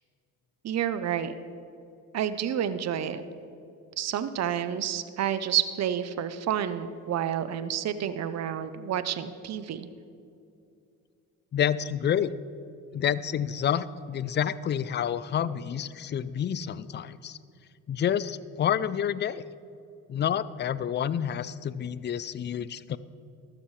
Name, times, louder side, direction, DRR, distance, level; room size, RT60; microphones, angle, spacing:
voice 1, 0.6-1.4 2.1-3.2 4.0-9.9, right 9 dB, 50° right, 12 dB, 0.7 m, -29 dB
voice 2, 11.5-12.3 12.9-17.4 17.9-19.4 20.1-23.0, left 9 dB, 30° left, 17 dB, 0.4 m, -29 dB
13.5 x 12.5 x 3.2 m, 2.6 s
cardioid pair, 85°, 35 cm